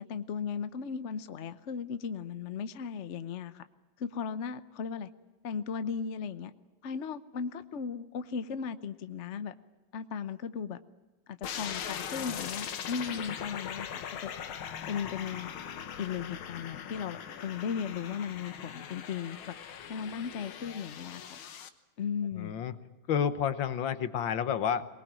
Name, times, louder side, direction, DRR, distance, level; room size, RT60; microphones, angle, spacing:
voice 1, 0.0-3.6 4.0-5.1 5.4-6.5 6.8-9.5 9.9-10.8 11.3-14.3 14.9-15.5 16.0-19.6 19.9-21.4 22.0-22.5, left 6 dB, 50° left, 11 dB, 0.9 m, -36 dB
sound 1, 11.4-21.7, left 8 dB, 85° left, 2.1 m, -40 dB
voice 2, 22.4-22.7 23.1-24.9, left 8 dB, 70° left, 12 dB, 1.8 m, -30 dB
22.5 x 20.0 x 9.0 m, 1.1 s
omnidirectional pair, 2.2 m